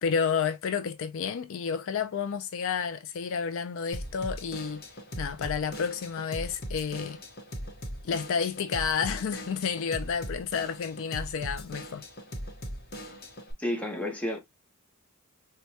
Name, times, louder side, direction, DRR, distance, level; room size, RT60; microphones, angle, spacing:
voice 1, 0.0-4.8 5.2-7.2 8.0-12.0, left 6 dB, 65° left, 0.4 m, -30 dB
Drum kit / Drum, 3.9-13.5, equal, 45° left, 0.9 m, -40 dB
voice 2, 13.6-14.4, left 1 dB, 5° left, 0.8 m, -31 dB
4.5 x 2.2 x 2.7 m
head